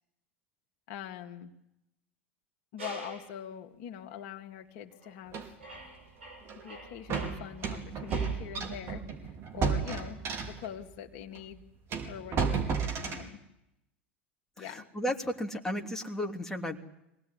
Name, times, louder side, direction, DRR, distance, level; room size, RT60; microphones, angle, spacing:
voice 1, 0.9-1.5 2.7-5.6 6.6-11.6 12.1-13.4 14.6-14.8, left 9 dB, 60° left, 4 dB, 2.3 m, -43 dB
sound 1, 2.8-3.4 4.1-4.3 4.9-5.3 5.6-8.5, right 2 dB, 85° right, 6.0 m, -47 dB
sound 2, 5.3-5.5 6.5-6.6 7.1-10.7 11.4-11.5 11.9-13.3, right 5 dB, 40° right, 5.0 m, -33 dB
voice 2, 14.6-16.8, equal, 5° left, 1 dB, 3.1 m, -34 dB
24.5 x 18.5 x 9.8 m, 0.85 s
hypercardioid pair, 90°, 6 cm